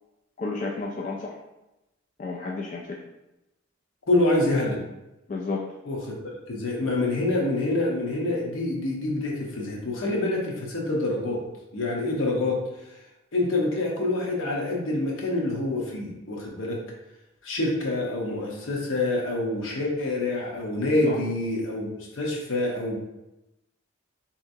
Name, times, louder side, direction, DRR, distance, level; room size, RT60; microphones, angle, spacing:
voice 1, 0.4-1.4 2.2-3.0 5.3-5.6 21.1-21.2, left 3 dB, 40° left, -1 dB, 0.3 m, -31 dB
voice 2, 4.1-4.8 5.8-6.0 6.5-11.4 11.7-12.6 13.3-16.8 17.4-21.9 22.1-23.0, left 2 dB, 80° left, -2 dB, 0.9 m, -26 dB
3.3 x 2.8 x 2.7 m, 0.94 s
head